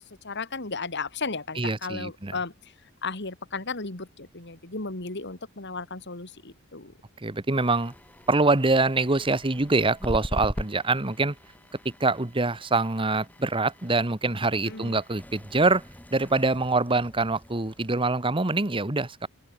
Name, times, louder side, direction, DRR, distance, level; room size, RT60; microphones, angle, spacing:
voice 1, 0.2-6.9 14.6-15.0, left 4 dB, 55° left, 2.9 m, -35 dB
voice 2, 1.6-2.3 7.2-7.9 8.3-11.3 11.8-15.8 16.1-19.3, right 3 dB, 25° right, 1.2 m, -24 dB
sound 1, 7.6-18.3, equal, 10° left, 2.1 m, -41 dB
open air
head